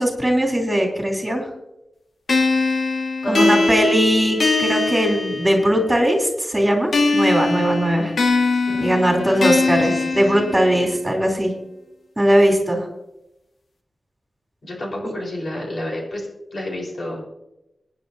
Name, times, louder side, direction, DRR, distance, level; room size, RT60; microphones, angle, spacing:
voice 1, 0.0-1.5 3.3-8.1 8.8-11.5 12.2-12.9 15.0-15.1, equal, 10° right, 0 dB, 3.3 m, -19 dB
sound 1, 2.3-5.9 6.9-10.9, left 3 dB, 70° left, 1.7 m, -21 dB
voice 2, 3.2-3.7 8.7-8.8 9.2-9.5 9.9-10.0 10.3-10.4 14.6-16.2 16.5-17.2, left 1 dB, 55° left, -1 dB, 4.4 m, -29 dB
24.5 x 10.0 x 2.8 m, 0.89 s
wide cardioid pair, 135°, 0 cm